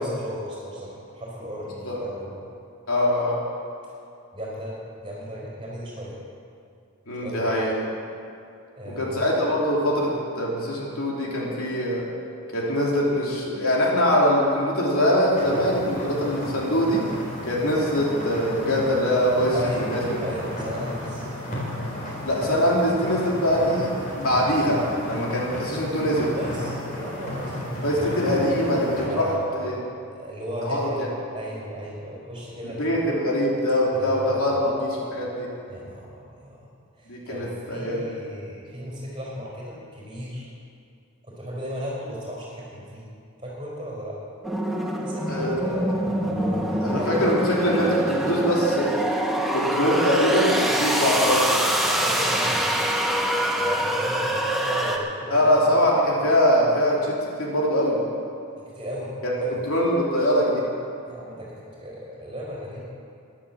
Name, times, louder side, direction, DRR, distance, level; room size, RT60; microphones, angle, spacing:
voice 1, 0.0-2.5 4.3-6.2 7.2-7.5 8.7-9.2 19.5-21.3 26.3-28.6 29.0-31.0 31.3-33.1 33.9-35.3 35.7-36.7 37.0-40.5 41.2-43.1 43.4-44.2 45.1-45.9 46.3-47.4 51.8-52.8 53.6-55.5 58.6-59.6 61.0-62.8, equal, 20° right, -4 dB, 4.6 m, -35 dB
voice 2, 2.9-3.4 7.1-7.7 8.8-12.0 12.5-17.0 17.5-19.5 19.9-20.0 22.2-23.9 24.1-26.3 27.8-29.8 30.6-30.9 32.6-35.5 37.1-38.1 45.2-45.9 46.8-48.9 49.5-51.6 55.3-58.0 59.2-59.3 59.7-60.6, equal, 75° left, -4 dB, 3.2 m, -23 dB
sound 1, 15.3-29.1, left 1 dB, 35° left, 4.0 m, -33 dB
sound 2, 44.4-55.0, right 1 dB, ahead, 1.1 m, -25 dB
13.0 x 11.0 x 7.4 m, 2.5 s
head